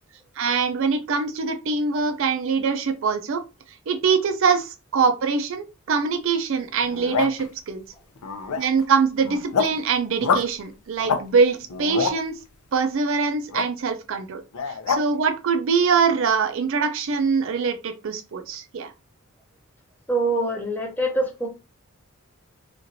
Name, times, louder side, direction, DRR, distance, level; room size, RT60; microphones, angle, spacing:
voice 1, 0.4-3.4 3.9-7.8 8.5-12.3 12.7-18.9, right 5 dB, 60° right, 0.4 m, -23 dB
sound 1, 6.8-7.5 8.2-8.8 9.2-9.8 10.2-10.5 11.0-11.2 11.6-12.2 13.5-13.6 14.5-15.0, left 5 dB, 85° left, 0.5 m, -26 dB
voice 2, 20.1-21.5, right 2 dB, 10° left, 0.5 m, -24 dB
3.0 x 2.5 x 2.6 m
head